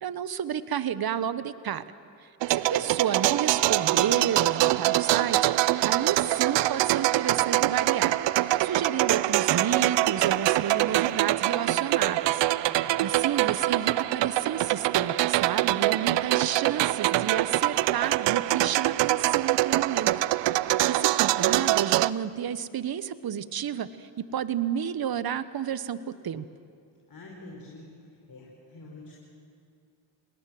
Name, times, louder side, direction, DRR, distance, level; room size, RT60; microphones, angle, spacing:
voice 1, 0.0-1.9 2.5-5.5 5.8-12.4 12.8-20.1 20.9-26.4, right 9 dB, 50° right, 14 dB, 1.2 m, -31 dB
voice 2, 2.4-2.9 12.7-13.1 27.1-27.9 28.3-29.2, left 2 dB, 50° left, -2 dB, 5.1 m, -47 dB
sound 1, 2.4-22.1, right 16 dB, 70° right, 0.6 m, -24 dB
sound 2, 3.6-16.4, right 4 dB, 25° right, 2.4 m, -45 dB
29.0 x 19.5 x 7.8 m, 2.4 s
supercardioid pair, 50°, 45 cm